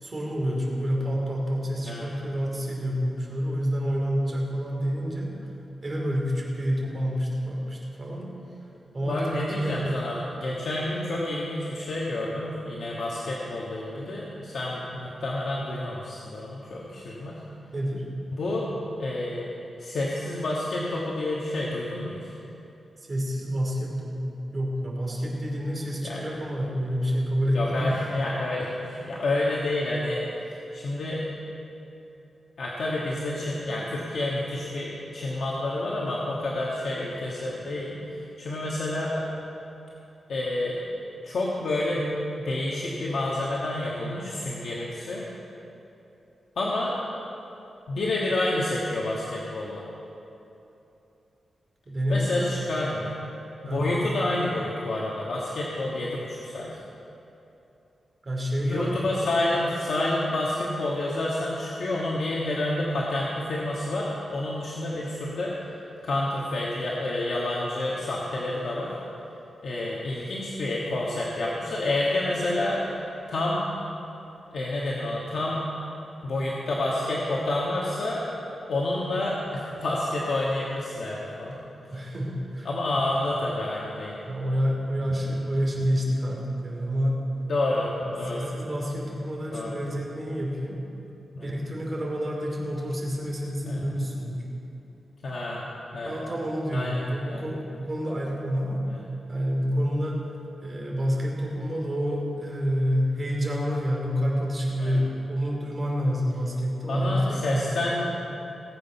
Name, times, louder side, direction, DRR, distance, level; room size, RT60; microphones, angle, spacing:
voice 1, 0.0-5.3 5.8-8.3 8.9-9.3 9.6-10.0 17.7-18.0 23.1-28.0 51.9-52.7 53.6-53.8 58.2-58.9 59.5-59.6 81.9-82.7 83.0-83.1 84.3-87.2 88.0-90.8 91.4-94.4 96.0-98.9 99.3-100.2 100.6-107.7, equal, 30° right, -2 dB, 2.6 m, -28 dB
voice 2, 9.0-17.4 18.3-18.7 19.0-19.5 19.8-22.3 26.0-26.2 27.5-30.3 30.7-31.2 32.6-39.3 40.3-40.8 41.2-42.0 42.4-45.2 46.5-47.0 47.9-49.8 52.1-53.3 53.6-56.8 58.6-65.6 66.0-69.0 69.6-72.8 73.3-73.7 74.5-75.6 76.2-78.2 78.7-81.6 81.9-82.1 82.6-84.2 87.5-88.6 89.5-89.8 91.3-91.6 93.6-93.8 95.2-95.6 95.9-96.1 96.7-97.4 104.8-105.0 106.9-108.3, left 1 dB, 65° left, -5 dB, 1.5 m, -29 dB
18.5 x 7.8 x 5.6 m, 2.9 s
wide cardioid pair, 155°, 0 cm